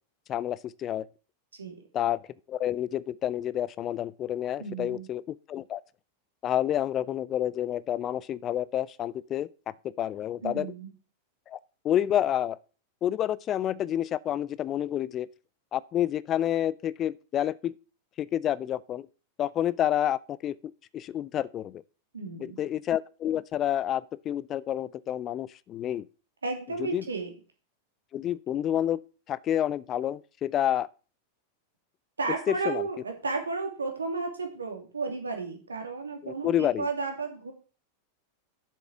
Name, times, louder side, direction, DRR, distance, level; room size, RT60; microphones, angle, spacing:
voice 1, 0.3-1.1 1.9-2.2 2.5-5.8 6.4-9.5 10.0-10.7 11.5-11.6 11.8-12.6 13.0-15.3 15.7-17.7 18.2-19.1 19.4-20.6 20.9-21.8 22.4-26.0 26.8-27.0 28.1-29.0 29.3-30.9 32.5-32.8 36.2-36.9, left 11 dB, 30° left, 0.4 m, -29 dB
voice 2, 4.6-5.1 10.4-10.9 22.1-22.6 26.4-27.3 32.2-37.5, right 4 dB, 75° right, 2.5 m, -33 dB
7.4 x 7.0 x 6.0 m
figure-of-eight pair, 90°, 0 cm